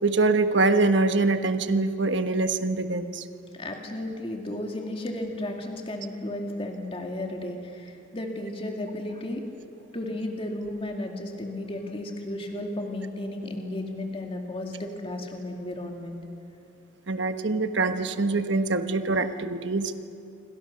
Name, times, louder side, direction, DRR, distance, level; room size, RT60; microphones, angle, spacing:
voice 1, 0.0-3.2 17.1-19.9, right 3 dB, 60° right, 8 dB, 1.2 m, -24 dB
voice 2, 3.5-9.6 9.9-16.2, left 1 dB, 25° left, 2 dB, 2.4 m, -34 dB
28.0 x 25.5 x 6.8 m, 2.7 s
head